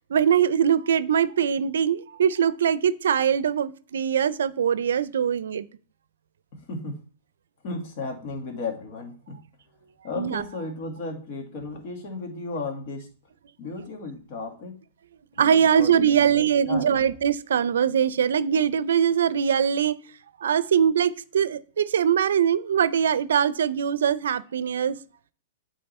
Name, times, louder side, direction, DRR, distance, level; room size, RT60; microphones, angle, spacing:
voice 1, 0.1-5.7 10.2-10.4 15.4-20.0 20.4-25.0, right 8 dB, 85° right, 0.5 m, -22 dB
voice 2, 7.6-9.4 10.0-13.1 13.6-14.8 15.4-17.0, left 3 dB, 50° left, 1.9 m, -34 dB
8.6 x 3.7 x 4.2 m
hypercardioid pair, 135°, 0 cm